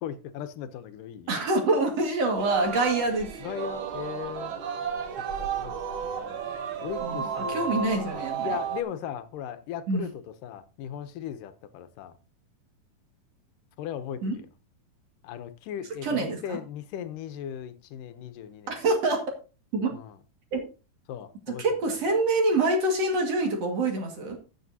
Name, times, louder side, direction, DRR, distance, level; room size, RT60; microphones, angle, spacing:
voice 1, 0.0-1.3 3.4-4.5 5.4-5.7 6.0-6.5 6.8-12.2 13.8-14.3 15.2-18.8 19.9-20.2 21.1-21.6, left 9 dB, 85° left, 2.4 m, -38 dB
voice 2, 1.3-3.3 7.0-8.6 9.9-10.1 14.2-14.3 16.0-16.6 18.7-19.2 19.7-19.9 20.5-20.6 21.5-24.4, right 2 dB, 55° right, 2.9 m, -26 dB
Singing, 2.4-8.8, right 7 dB, 75° right, 1.2 m, -33 dB
15.5 x 7.3 x 2.7 m
omnidirectional pair, 3.7 m